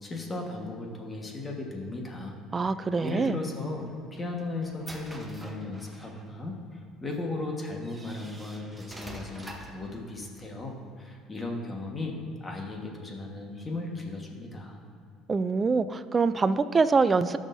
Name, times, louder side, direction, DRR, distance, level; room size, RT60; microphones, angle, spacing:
voice 1, 0.0-2.4 2.6-14.8, left 2 dB, 20° left, 0 dB, 1.4 m, -36 dB
voice 2, 2.5-3.4 15.3-17.4, right 4 dB, 25° right, 13 dB, 0.4 m, -24 dB
sound 1, 3.8-6.3 7.1-7.2 7.8-9.9, right 1 dB, 10° right, 0.9 m, -45 dB
15.5 x 6.4 x 2.7 m, 2.4 s
cardioid pair, 110°, 0 cm